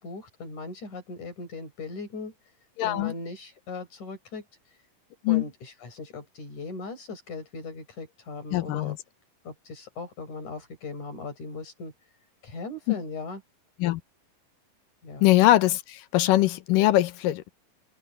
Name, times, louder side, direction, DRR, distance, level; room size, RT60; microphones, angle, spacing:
voice 1, 0.0-2.5 2.8-4.8 5.3-9.0 9.5-11.9 12.4-13.4 15.0-15.3, left 3 dB, 60° left, 7.0 m, -38 dB
voice 2, 2.8-3.1 5.2-5.4 8.5-9.0 12.9-13.0 13.8-14.0 15.2-17.5, left 15 dB, 80° left, 2.4 m, -22 dB
omnidirectional pair, 3.9 m